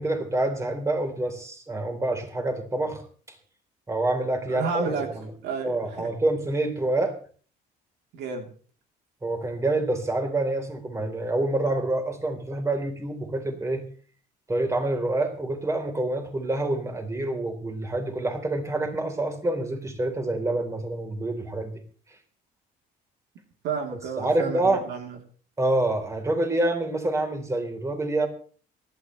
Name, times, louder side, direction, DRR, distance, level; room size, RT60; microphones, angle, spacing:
voice 1, 0.0-3.0 3.9-5.3 5.6-7.1 9.2-13.9 14.5-21.7 24.2-24.8 25.6-28.3, right 2 dB, 15° right, 4 dB, 3.9 m, -27 dB
voice 2, 4.5-5.1 5.4-6.1 8.1-8.5 23.6-25.2, right 5 dB, 85° right, 3 dB, 3.4 m, -31 dB
24.0 x 12.5 x 3.3 m, 0.42 s
cardioid pair, 110°, 17 cm